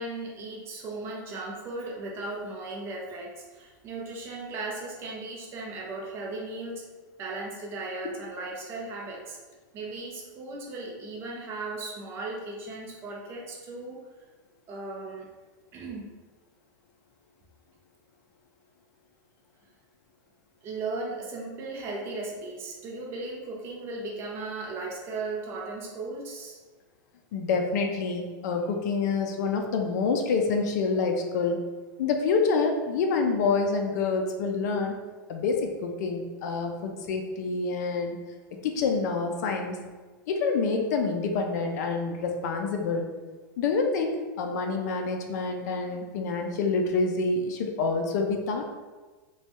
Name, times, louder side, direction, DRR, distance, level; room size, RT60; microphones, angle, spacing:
voice 1, 0.0-6.8 7.2-9.4 9.7-14.1 14.7-15.3 15.7-16.1 20.6-26.6, right 2 dB, 20° right, -2 dB, 0.5 m, -36 dB
voice 2, 27.3-31.6 32.0-34.9 35.3-38.2 38.6-39.8 40.3-43.1 43.6-48.6, left 4 dB, 55° left, 3 dB, 0.4 m, -27 dB
3.1 x 2.2 x 2.9 m, 1.3 s
supercardioid pair, 165°, 11 cm